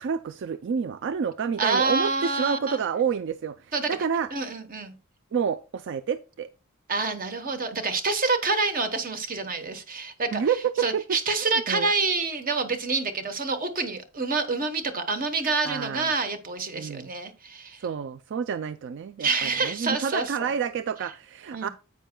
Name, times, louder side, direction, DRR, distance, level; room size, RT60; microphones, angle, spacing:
voice 1, 0.0-3.6 3.9-4.3 5.3-6.5 10.3-11.0 11.7-11.9 15.6-16.1 16.7-17.1 17.8-21.7, right 7 dB, 55° right, 0.4 m, -29 dB
voice 2, 1.6-2.8 3.7-3.9 4.3-4.9 6.9-10.4 10.8-17.8 19.2-20.5 21.5-21.7, right 3 dB, 40° right, 1.1 m, -27 dB
10.0 x 8.1 x 2.2 m
head